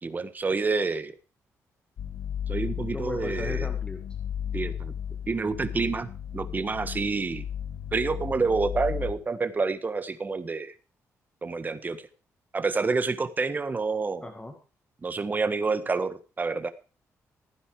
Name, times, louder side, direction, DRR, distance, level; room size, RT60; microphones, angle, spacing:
voice 1, 0.0-1.1 2.5-3.7 4.5-4.9 5.3-6.1 6.3-7.5 7.9-10.7 11.4-12.0 12.5-14.2 15.0-16.7, right 4 dB, 30° right, 12 dB, 1.4 m, -28 dB
sound 1, 2.0-9.1, left 9 dB, 70° left, 2.3 m, -34 dB
voice 2, 2.9-4.0 14.2-14.5, left 2 dB, 15° left, 5 dB, 1.9 m, -36 dB
15.5 x 9.6 x 4.9 m, 0.35 s
cardioid pair, 90°, 6 cm